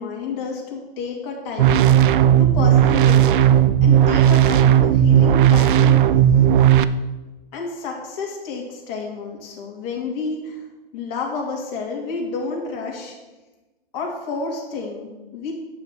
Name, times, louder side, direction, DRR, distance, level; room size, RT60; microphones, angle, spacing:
voice 1, 0.0-3.3 3.8-6.0 7.5-10.6 10.9-13.1 13.9-15.5, left 4 dB, 45° left, 0 dB, 2.6 m, -30 dB
sound 1, 1.6-6.8, right 10 dB, 60° right, 0.5 m, -14 dB
8.1 x 5.6 x 6.0 m, 1.1 s
hypercardioid pair, 130°, 29 cm